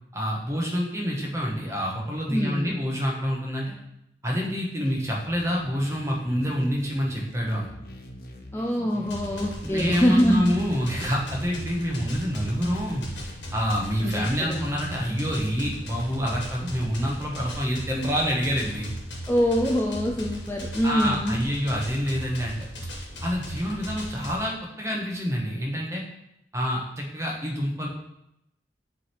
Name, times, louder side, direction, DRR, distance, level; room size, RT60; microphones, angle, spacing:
voice 1, 0.1-3.7 4.2-7.7 9.6-13.0 13.5-18.9 20.8-22.7 23.2-26.0 26.5-27.9, equal, 15° right, -2 dB, 1.2 m, -27 dB
voice 2, 2.3-2.7 8.5-10.6 14.0-14.7 19.3-21.5, equal, 15° left, 0 dB, 0.4 m, -24 dB
sound 1, 4.8-16.1, left 1 dB, 55° left, 0.8 m, -45 dB
sound 2, 9.0-24.3, equal, 85° left, 1.5 m, -37 dB
7.1 x 3.5 x 4.6 m, 0.81 s
head